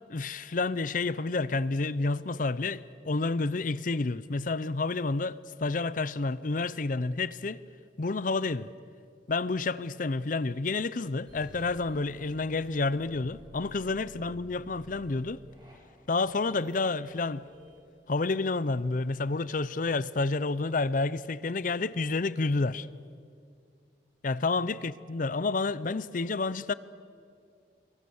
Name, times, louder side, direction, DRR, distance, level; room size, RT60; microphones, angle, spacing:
voice 1, 0.1-7.6 8.0-8.7 9.3-15.4 16.1-17.5 18.1-22.9 24.2-26.7, left 3 dB, 45° left, 0.6 m, -29 dB
sound 1, 11.3-17.8, equal, 25° right, 6.0 m, -53 dB
28.0 x 23.0 x 7.1 m
head